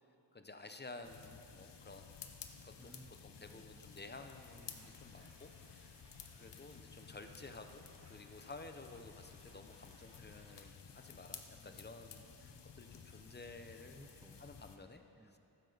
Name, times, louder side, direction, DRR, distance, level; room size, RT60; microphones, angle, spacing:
voice 1, 0.3-2.1 2.6-2.7 3.2-5.9 6.3-14.0 14.4-15.0, left 3 dB, 25° left, 6 dB, 0.8 m, -53 dB
sound 1, 1.0-14.8, left 6 dB, 75° left, 0.9 m, -55 dB
voice 2, 2.8-4.2 4.7-5.0 11.5-12.7 14.0-15.4, right 1 dB, 10° right, 10 dB, 0.3 m, -63 dB
sound 2, 4.3-10.7, right 3 dB, 70° right, 1.3 m, -69 dB
14.5 x 12.5 x 4.0 m, 2.9 s
wide cardioid pair, 105°, 42 cm